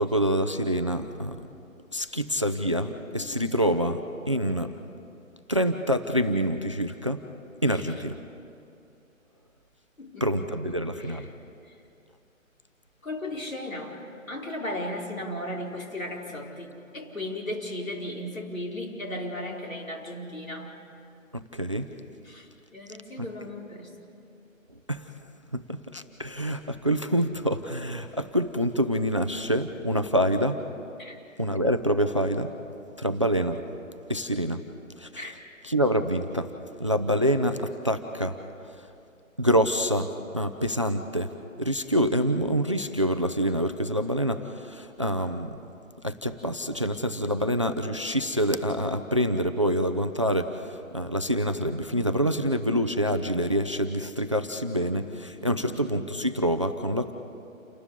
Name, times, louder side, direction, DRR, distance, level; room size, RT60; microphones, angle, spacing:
voice 1, 0.0-1.4 1.9-4.0 4.3-4.7 5.5-7.2 7.6-8.1 10.2-11.3 21.3-21.9 23.2-23.3 24.9-25.1 25.5-30.6 31.4-32.5 33.0-33.6 34.1-34.6 35.0-35.1 35.6-36.5 36.8-38.4 39.4-41.3 41.6-45.6 46.0-57.1, equal, 25° right, 8 dB, 0.5 m, -26 dB
voice 2, 10.0-11.3 13.0-14.0 14.3-20.8 22.2-24.1 31.0-31.2 35.2-35.3 54.8-55.8, left 1 dB, 80° left, -1 dB, 4.7 m, -36 dB
29.0 x 12.5 x 8.3 m, 2.6 s
figure-of-eight pair, 145°, 40 cm